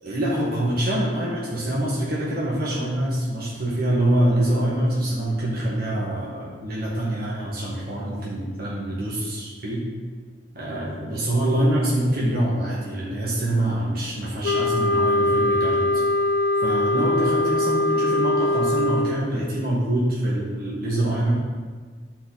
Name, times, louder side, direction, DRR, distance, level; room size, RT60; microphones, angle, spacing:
voice 1, 0.0-9.9 10.5-15.8 16.6-21.3, right 1 dB, 60° right, -6 dB, 1.6 m, -25 dB
sound 1, 14.4-19.3, left 2 dB, 70° left, 0.4 m, -22 dB
11.0 x 4.5 x 4.1 m, 1.5 s
head